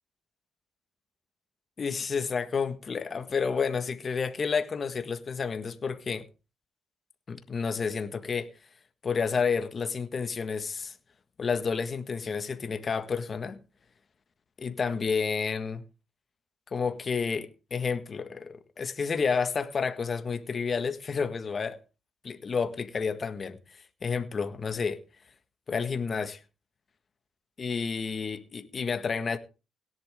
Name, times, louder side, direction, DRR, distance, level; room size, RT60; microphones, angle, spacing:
voice 1, 1.8-6.2 7.3-8.5 9.0-10.9 11.4-13.6 14.6-15.8 16.7-21.8 22.2-25.0 25.7-26.4 27.6-29.4, left 5 dB, 40° left, 1.6 m, -30 dB
17.0 x 11.0 x 3.7 m
cardioid pair, 90°, 0 cm